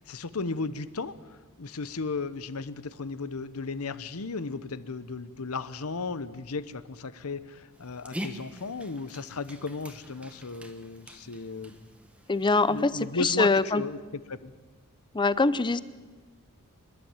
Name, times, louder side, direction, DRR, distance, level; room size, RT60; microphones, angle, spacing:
voice 1, 0.0-11.7 12.7-14.0 14.3-14.5, left 4 dB, 75° left, 15 dB, 0.9 m, -35 dB
Dog, 7.7-13.1, equal, 5° right, 1.4 m, -44 dB
voice 2, 12.3-13.8 15.1-15.8, left 3 dB, 20° left, 17 dB, 0.6 m, -24 dB
26.0 x 11.5 x 9.0 m, 1.4 s
head